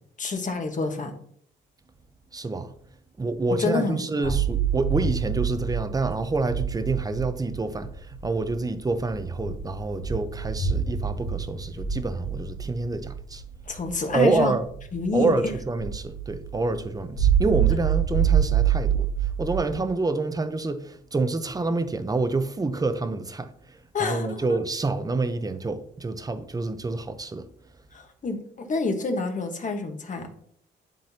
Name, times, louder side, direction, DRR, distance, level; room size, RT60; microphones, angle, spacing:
voice 1, 0.2-1.1 3.6-4.3 13.7-14.5 14.9-15.5 23.9-24.6 27.9-30.3, left 3 dB, 40° left, 1.3 m, -28 dB
voice 2, 2.3-2.7 3.2-13.4 14.1-14.7 15.1-27.4, right 3 dB, 20° right, 0.7 m, -27 dB
sound 1, 4.2-19.7, right 8 dB, 85° left, 1.8 m, -27 dB
10.5 x 3.9 x 2.8 m
cardioid pair, 90°, 20 cm